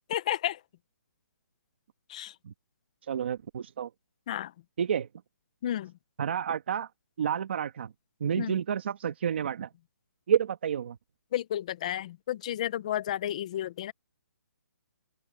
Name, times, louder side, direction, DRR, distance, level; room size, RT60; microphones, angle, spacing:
voice 1, 0.1-0.6 2.1-2.3 4.3-4.5 5.6-5.9 8.4-8.5 11.3-13.9, left 12 dB, 25° left, 0.6 m, -32 dB
voice 2, 3.1-3.9 4.8-5.1 6.2-6.9 7.2-7.9 8.2-9.7 10.3-11.0, right 8 dB, 40° right, 1.3 m, -29 dB
open air
hypercardioid pair, 175°, 9 cm